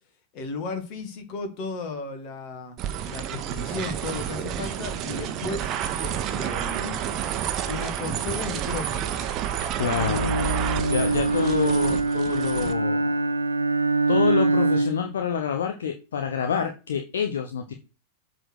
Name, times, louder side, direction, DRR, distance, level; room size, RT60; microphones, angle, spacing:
voice 1, 0.3-2.8 3.1-5.7 6.0-7.1 7.6-9.2, left 4 dB, 40° left, 2.2 m, -35 dB
sound 1, 2.8-12.7, right 9 dB, 35° right, 1.0 m, -30 dB
voice 2, 9.8-10.4 10.9-13.2 14.1-17.7, left 7 dB, 65° left, 0.9 m, -27 dB
Bowed string instrument, 9.9-15.2, right 3 dB, 80° right, 0.7 m, -24 dB
7.8 x 4.2 x 6.5 m
figure-of-eight pair, 90°, 0 cm